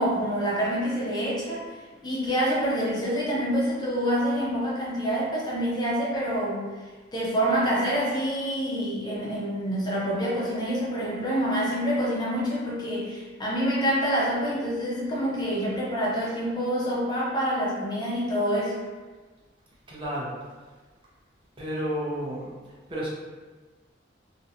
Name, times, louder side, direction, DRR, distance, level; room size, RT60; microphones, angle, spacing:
voice 1, 0.0-1.8 2.0-6.7 7.1-18.8, equal, 20° left, -6 dB, 0.6 m, -27 dB
voice 2, 19.9-20.3 21.6-22.5 22.9-23.1, equal, 25° right, -6 dB, 0.5 m, -31 dB
2.4 x 2.1 x 2.7 m, 1.3 s
head